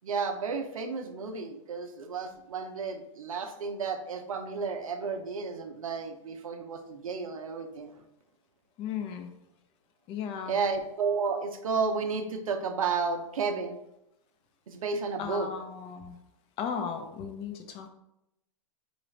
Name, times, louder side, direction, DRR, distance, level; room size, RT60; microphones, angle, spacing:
voice 1, 0.0-7.9 10.5-13.8 14.7-15.5, right 5 dB, 90° right, 6 dB, 0.6 m, -32 dB
voice 2, 8.8-9.3 10.1-10.5 15.2-16.1 16.6-17.9, left 7 dB, 35° left, 6 dB, 0.6 m, -35 dB
5.1 x 2.4 x 3.2 m, 0.84 s
hypercardioid pair, 125°, 17 cm